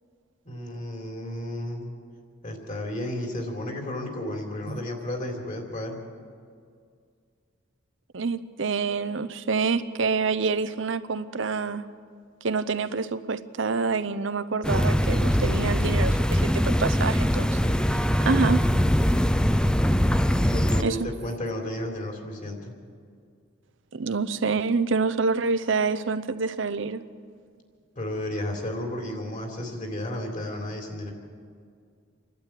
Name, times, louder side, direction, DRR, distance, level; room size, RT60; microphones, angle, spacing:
voice 1, 0.5-1.9 2.4-6.0 20.4-22.7 28.0-31.1, left 1 dB, 40° left, 2 dB, 3.7 m, -33 dB
voice 2, 8.1-11.9 12.4-18.0 18.2-18.6 20.8-21.1 23.9-27.0, right 4 dB, 70° right, 12 dB, 0.7 m, -27 dB
sound 1, 14.6-20.8, equal, 5° left, 0.5 m, -22 dB
27.5 x 12.0 x 9.3 m, 2.2 s
head